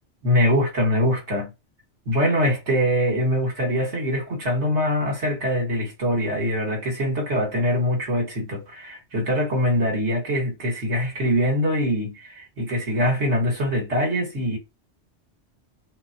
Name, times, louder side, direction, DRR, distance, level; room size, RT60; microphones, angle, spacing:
voice 1, 0.2-1.5 2.1-14.6, equal, 80° right, 2.0 m, -23 dB
5.9 x 2.3 x 2.8 m
omnidirectional pair, 1.2 m